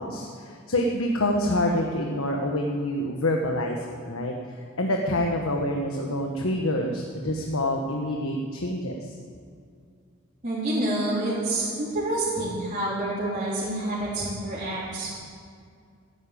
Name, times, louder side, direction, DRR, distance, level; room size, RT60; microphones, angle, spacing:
voice 1, 0.0-4.3 4.8-9.1, left 1 dB, 80° left, 1 dB, 1.3 m, -27 dB
voice 2, 10.4-15.1, right 1 dB, 35° right, -10 dB, 3.9 m, -28 dB
14.5 x 9.9 x 8.7 m, 2.2 s
head